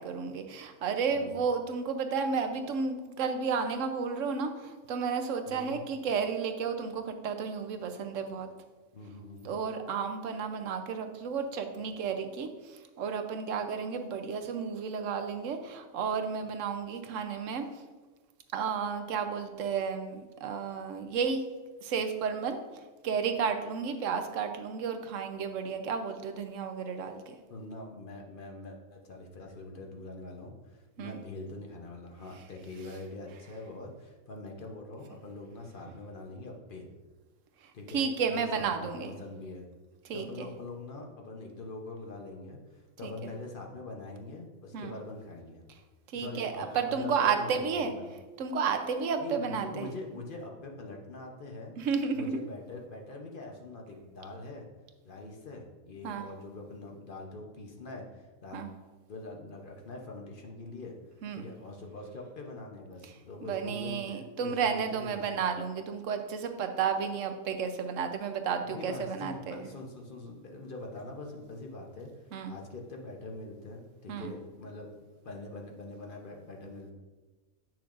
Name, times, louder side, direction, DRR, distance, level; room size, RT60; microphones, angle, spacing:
voice 1, 0.0-8.5 9.4-17.6 18.5-21.4 21.8-22.6 23.0-27.4 31.0-31.2 37.9-39.2 40.0-40.5 43.0-43.3 44.7-44.9 46.1-47.9 48.4-49.9 51.8-52.4 56.0-56.3 58.5-58.7 61.2-61.5 63.4-69.6 72.3-72.5 74.1-74.3, right 6 dB, 85° right, 6 dB, 1.0 m, -32 dB
voice 2, 1.1-1.4 5.5-5.8 8.9-9.5 27.5-36.9 37.7-38.1 38.3-39.7 40.1-45.6 46.1-48.1 49.2-51.7 52.1-54.7 55.0-58.7 59.1-61.0 61.3-65.3 68.6-72.1 72.5-76.9, left 2 dB, 50° left, 1 dB, 0.9 m, -43 dB
8.3 x 6.0 x 2.5 m, 1.3 s
omnidirectional pair, 1.3 m